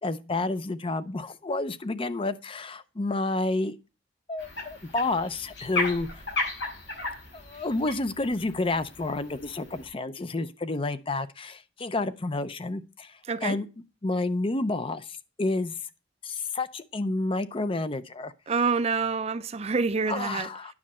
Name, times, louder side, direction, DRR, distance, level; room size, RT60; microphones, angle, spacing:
voice 1, 0.0-3.8 4.3-6.2 7.3-13.7 14.0-15.1 15.4-15.8 16.2-18.3 20.1-20.7, left 2 dB, 30° left, 0.5 m, -30 dB
sound 1, 4.4-9.9, left 2 dB, 80° left, 5.6 m, -35 dB
voice 2, 18.5-20.5, right 4 dB, 35° right, 0.5 m, -27 dB
9.7 x 6.3 x 4.2 m
head